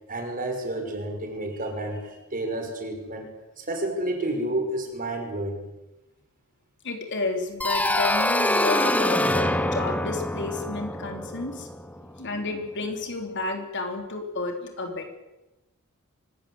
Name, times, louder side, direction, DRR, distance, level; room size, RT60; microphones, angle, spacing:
voice 1, 0.1-5.6, right 1 dB, 40° right, 4 dB, 5.8 m, -30 dB
voice 2, 6.8-11.7 12.2-15.1, left 3 dB, 55° left, 3 dB, 4.0 m, -31 dB
sound 1, 7.6-12.3, left 1 dB, 5° left, 1.3 m, -25 dB
25.0 x 19.5 x 8.2 m, 1.0 s
head